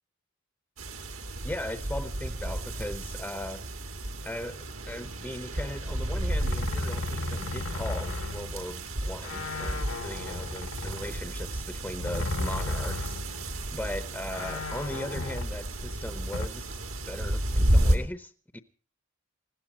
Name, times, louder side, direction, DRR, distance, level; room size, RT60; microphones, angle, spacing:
sound 1, 0.8-18.0, right 1 dB, 75° right, 2.1 m, -32 dB
voice 1, 1.4-3.6 4.2-18.6, left 1 dB, 10° left, 10 dB, 0.7 m, -39 dB
sound 2, 6.3-8.9 9.2-13.5 13.8-13.9 14.3-16.5, left 2 dB, 70° left, 1.0 m, -35 dB
20.0 x 15.5 x 4.2 m, 0.39 s
head